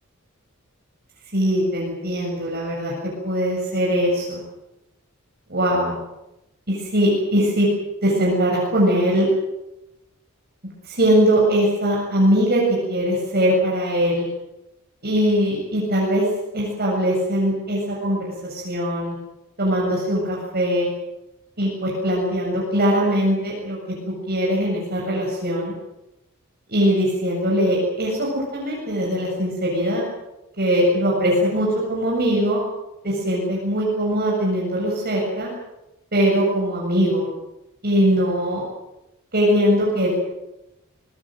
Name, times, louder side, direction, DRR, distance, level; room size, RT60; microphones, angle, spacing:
voice 1, 1.3-2.9 3.2-4.4 5.5-6.0 6.7-7.7 8.0-9.3 10.8-14.3 15.0-16.3 16.5-19.2 19.6-20.9 21.6-24.0 24.3-25.7 26.7-30.0 30.6-32.6 33.0-35.5 36.1-37.3 37.8-38.6 39.3-40.2, equal, 45° right, -3 dB, 7.4 m, -21 dB
24.5 x 21.5 x 7.9 m, 0.92 s
head